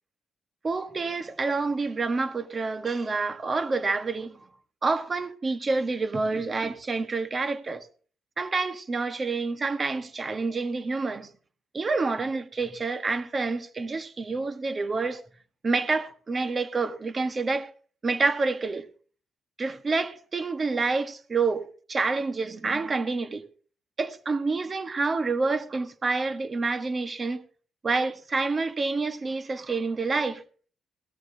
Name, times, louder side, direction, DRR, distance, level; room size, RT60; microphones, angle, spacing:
voice 1, 0.6-4.4 4.8-7.9 8.4-11.3 11.7-15.2 15.6-17.7 18.0-18.8 19.6-23.4 24.0-27.4 27.8-30.4, right 3 dB, 35° right, 1.4 m, -28 dB
17.5 x 13.5 x 2.8 m
cardioid pair, 90°, 0 cm